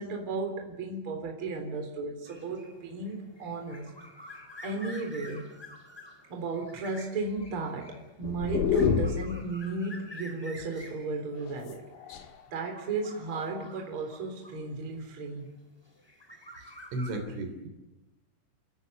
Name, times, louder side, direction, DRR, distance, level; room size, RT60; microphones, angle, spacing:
voice 1, 0.0-3.9 4.6-5.5 6.3-11.8 12.1-15.5, right 3 dB, 30° right, 2 dB, 4.0 m, -35 dB
sound 1, 2.2-15.1 15.8-17.1, left 1 dB, 5° left, 2.1 m, -49 dB
sound 2, 8.2-9.5 11.3-12.4 13.2-13.7, left 8 dB, 60° left, 2.7 m, -28 dB
voice 2, 16.9-17.7, right 1 dB, 80° right, 6 dB, 5.7 m, -34 dB
29.0 x 16.5 x 8.3 m, 1.0 s
omnidirectional pair, 5.5 m